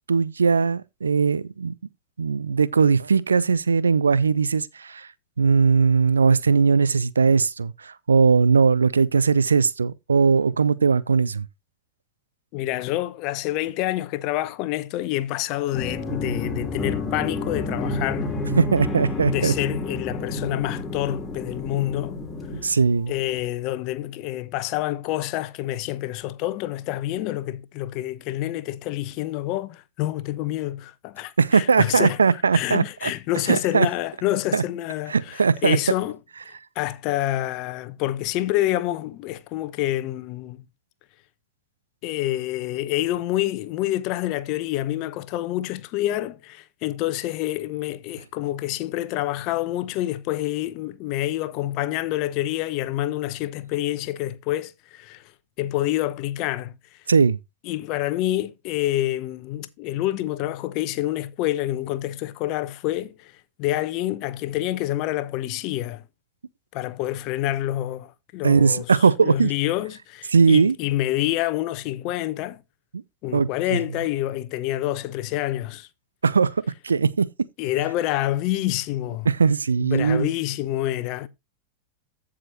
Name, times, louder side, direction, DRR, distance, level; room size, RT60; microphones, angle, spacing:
voice 1, 0.1-1.7 2.2-5.1 5.4-11.5 18.6-19.5 22.5-23.1 31.4-33.1 33.5-33.9 34.5-34.6 35.1-35.8 57.1-57.4 68.4-69.5 70.3-70.8 72.9-73.0 73.3-73.8 76.2-76.5 76.8-77.3 79.3-80.3, right 5 dB, 75° right, 0.5 m, -19 dB
voice 2, 12.5-18.3 19.2-22.2 23.1-32.2 32.5-36.2 36.8-40.6 42.0-55.2 55.6-56.7 57.7-63.3 63.6-66.0 66.7-68.9 69.2-72.6 73.2-75.9 77.6-79.3 79.8-81.3, left 15 dB, 40° left, 0.9 m, -27 dB
sound 1, 15.7-23.3, left 3 dB, 15° left, 2.7 m, -30 dB
15.0 x 5.0 x 2.9 m
figure-of-eight pair, 90°, 0 cm